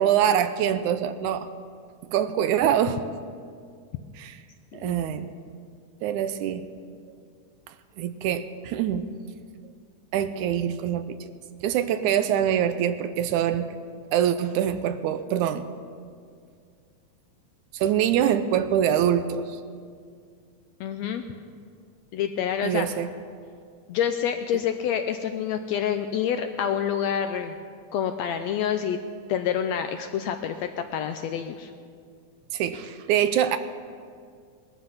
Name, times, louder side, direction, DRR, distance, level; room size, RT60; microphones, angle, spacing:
voice 1, 0.0-1.5 2.1-3.0 4.2-4.4 4.8-5.3 6.0-6.7 8.0-9.1 10.1-11.2 11.6-13.7 14.1-15.7 17.7-19.6 22.6-23.1 32.5-33.6, right 9 dB, 80° right, 11 dB, 2.1 m, -24 dB
voice 2, 4.7-5.0 20.8-21.2 22.1-22.9 23.9-27.5 27.9-29.0 29.3-31.7, left 9 dB, 80° left, 7 dB, 1.6 m, -27 dB
19.5 x 13.0 x 5.7 m, 2.2 s
omnidirectional pair, 3.6 m